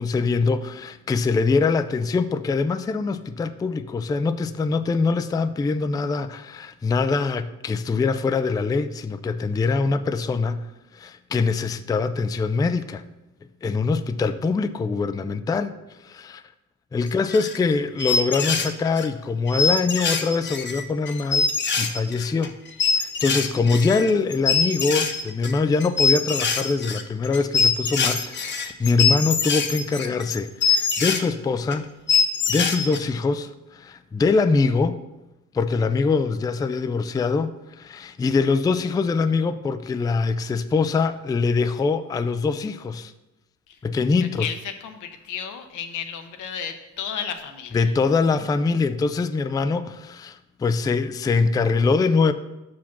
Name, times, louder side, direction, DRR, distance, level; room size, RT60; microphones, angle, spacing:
voice 1, 0.0-13.0 13.6-16.4 16.9-22.5 23.0-31.9 32.5-35.0 35.5-43.1 43.8-44.5 47.7-52.3, left 4 dB, 15° left, 0.3 m, -23 dB
voice 2, 13.6-13.9 43.7-43.8 44.4-47.9, left 8 dB, 85° left, 0.8 m, -33 dB
sound 1, 17.1-17.7 18.0-19.1 19.5-31.2 31.7-31.8 32.1-33.0, left 5 dB, 35° left, 0.8 m, -23 dB
5.9 x 5.0 x 5.8 m
cardioid pair, 90°, 30 cm